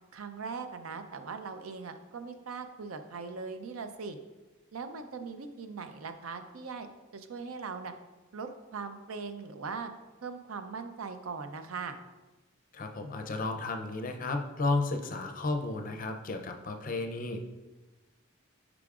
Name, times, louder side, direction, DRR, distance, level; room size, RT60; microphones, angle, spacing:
voice 1, 0.1-4.2 4.7-6.9 7.1-7.9 8.3-9.9 10.2-12.0, right 5 dB, 80° right, 8 dB, 0.5 m, -40 dB
voice 2, 12.7-17.4, left 3 dB, 40° left, 5 dB, 0.5 m, -33 dB
8.3 x 4.9 x 2.4 m, 1.1 s
head